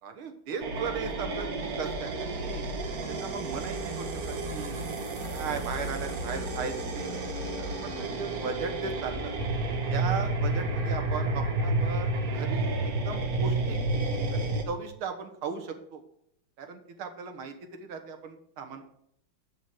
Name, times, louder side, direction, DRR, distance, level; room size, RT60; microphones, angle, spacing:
voice 1, 0.0-2.6 3.1-4.8 5.3-9.3 9.9-12.1 12.3-12.7 13.1-13.8 14.3-16.0 16.6-18.8, right 5 dB, 90° right, 6 dB, 2.1 m, -37 dB
sound 1, 0.6-14.6, right 2 dB, 50° right, 1.4 m, -31 dB
7.5 x 5.8 x 7.6 m, 0.70 s
omnidirectional pair, 2.3 m